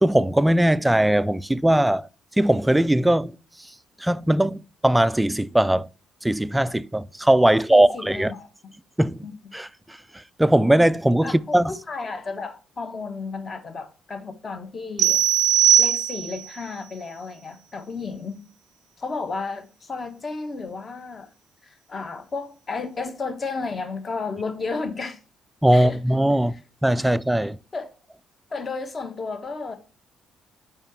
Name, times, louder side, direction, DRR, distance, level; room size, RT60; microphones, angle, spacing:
voice 1, 0.0-2.1 2.4-3.3 4.0-5.9 6.2-8.3 9.0-9.2 9.5-9.7 10.4-11.7 25.6-26.5 26.8-27.6, right 1 dB, 5° right, 0.3 m, -19 dB
voice 2, 7.5-8.5 9.2-9.3 11.2-15.2 15.8-18.4 19.0-21.3 21.6-25.2 25.7-26.0 26.5-26.6 27.7-27.9 28.5-29.8, left 4 dB, 35° left, 1.1 m, -33 dB
sound 1, 15.0-16.5, right 10 dB, 80° right, 0.4 m, -19 dB
5.5 x 4.9 x 5.9 m
cardioid pair, 100°, 0 cm